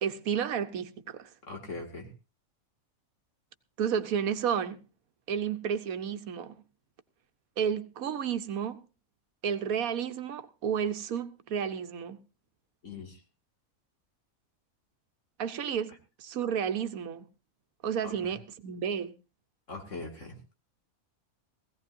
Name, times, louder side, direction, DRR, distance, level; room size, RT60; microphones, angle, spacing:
voice 1, 0.0-1.3 3.8-4.8 5.3-6.6 7.6-8.8 9.4-12.2 15.4-17.3 17.8-19.1, right 7 dB, 80° right, 1.3 m, -31 dB
voice 2, 1.4-2.1 12.8-13.2 18.0-18.3 19.7-20.6, left 3 dB, 60° left, 2.7 m, -41 dB
17.0 x 16.5 x 2.7 m
omnidirectional pair, 1.5 m